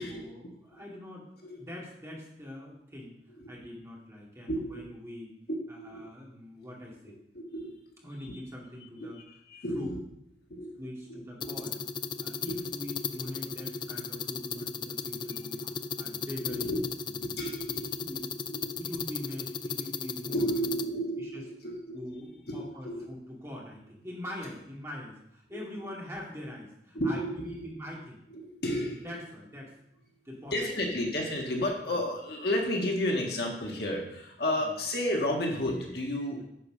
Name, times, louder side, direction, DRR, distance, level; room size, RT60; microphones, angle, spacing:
voice 1, 0.0-3.1 3.5-5.3 5.7-7.2 8.0-9.2 9.7-9.9 10.8-11.8 12.2-16.7 17.0-17.4 17.7-18.2 18.7-20.5 20.9-21.4 21.9-28.2 29.0-29.7 30.2-31.1 31.9-32.0 34.6-34.7 36.3-36.4, left 1 dB, 15° right, -3 dB, 2.2 m, -43 dB
voice 2, 4.5-4.9 5.8-6.0 7.3-7.8 8.2-8.4 9.0-9.1 9.5-10.0 10.5-10.7 11.4-11.5 12.5-12.7 16.5-16.9 17.1-18.3 18.5-18.9 20.2-22.0 22.5-23.1 26.9-27.7 28.3-29.2 30.5-36.4, left 1 dB, 55° left, 0 dB, 1.7 m, -32 dB
sound 1, 11.4-20.8, left 5 dB, 25° left, 0.3 m, -36 dB
9.5 x 5.1 x 6.3 m, 0.79 s
head